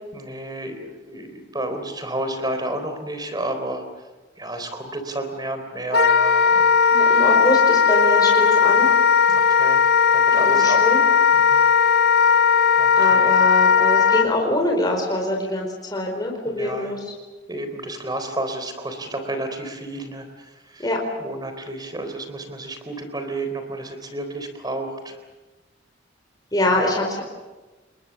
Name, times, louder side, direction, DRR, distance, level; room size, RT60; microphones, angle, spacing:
voice 1, 0.1-3.8 4.4-6.9 9.3-9.8 10.1-10.9 11.3-11.6 12.8-13.3 16.5-16.9 17.5-20.3 20.7-20.9 21.2-25.2 26.6-26.8, right 1 dB, 20° right, 7 dB, 3.8 m, -31 dB
Wind instrument woodwind instrument, 5.9-14.3, left 6 dB, 60° left, 0.9 m, -17 dB
voice 2, 6.9-8.9 10.3-11.0 12.9-17.0 20.8-21.0 26.5-27.2, left 1 dB, 20° left, 0 dB, 4.7 m, -24 dB
29.0 x 21.5 x 7.1 m, 1.2 s
head